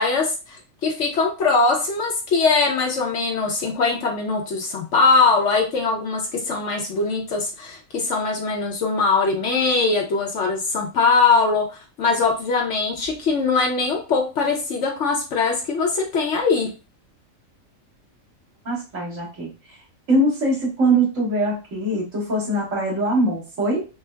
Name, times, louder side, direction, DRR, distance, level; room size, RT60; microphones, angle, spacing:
voice 1, 0.0-11.7 12.0-16.7, left 4 dB, 65° left, 2 dB, 1.0 m, -21 dB
voice 2, 18.7-19.5 20.1-23.9, right 1 dB, 65° right, -5 dB, 1.7 m, -22 dB
4.3 x 2.0 x 2.2 m, 0.31 s
omnidirectional pair, 1.4 m